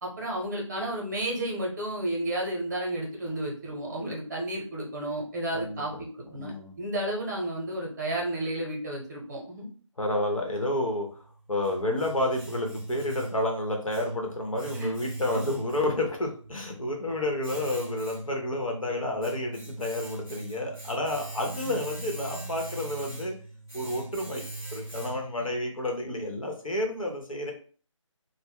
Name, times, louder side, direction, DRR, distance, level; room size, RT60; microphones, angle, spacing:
voice 1, 0.0-6.5 6.8-9.7 14.8-14.9 15.3-15.4 21.6-21.8, right 1 dB, 35° right, -1 dB, 0.8 m, -32 dB
voice 2, 5.5-6.0 6.3-6.7 10.0-11.2 11.5-23.3 23.7-24.4 24.7-27.5, left 1 dB, 85° left, 1 dB, 0.9 m, -30 dB
Domestic sounds home sounds, 11.1-25.5, right 2 dB, 5° left, 0.4 m, -41 dB
2.3 x 2.1 x 3.5 m, 0.42 s
figure-of-eight pair, 155°, 17 cm